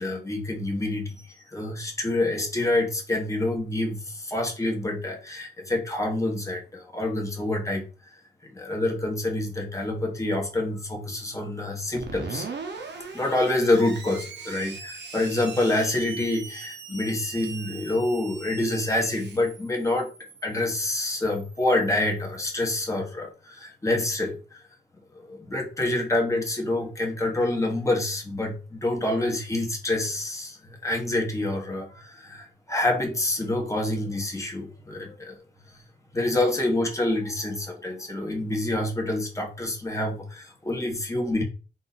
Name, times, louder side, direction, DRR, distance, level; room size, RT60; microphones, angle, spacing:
voice 1, 0.0-7.8 8.4-12.5 13.1-20.1 20.4-24.6 25.1-35.4 35.7-35.8 36.1-41.4, left 1 dB, 15° left, 0 dB, 1.3 m, -27 dB
Screech, 12.0-22.4, right 4 dB, 75° right, 0.9 m, -40 dB
3.9 x 2.7 x 4.1 m, 0.34 s
wide cardioid pair, 115°, 18 cm